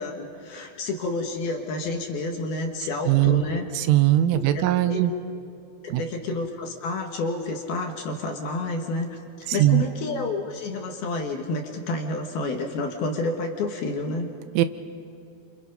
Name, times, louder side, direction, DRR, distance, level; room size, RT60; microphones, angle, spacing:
voice 1, 0.0-3.7 4.3-5.1 5.9-14.3, left 2 dB, 65° left, 2 dB, 2.8 m, -30 dB
voice 2, 3.1-3.4 3.8-5.1 5.9-6.0 9.5-9.8 14.6-14.7, right 14 dB, 85° right, 10 dB, 3.4 m, -20 dB
29.5 x 27.0 x 5.3 m, 2.6 s
omnidirectional pair, 5.7 m